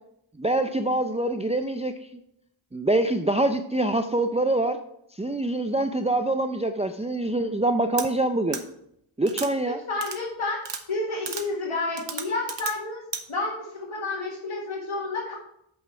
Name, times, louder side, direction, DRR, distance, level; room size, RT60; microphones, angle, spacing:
voice 1, 0.4-1.9 2.7-4.8 5.2-8.6 9.2-9.8, right 2 dB, 15° right, 7 dB, 0.5 m, -25 dB
sound 1, 8.0-8.1 8.5-8.6 9.3-9.5 10.0-10.2 10.6-10.8 11.3-11.4 12.0-12.7 13.1-13.2, right 5 dB, 60° right, 1.0 m, -33 dB
voice 2, 9.7-10.6 10.9-13.0 13.3-15.3, left 3 dB, 80° left, -4 dB, 1.7 m, -30 dB
8.2 x 5.6 x 4.5 m, 0.75 s
wide cardioid pair, 45°, 49 cm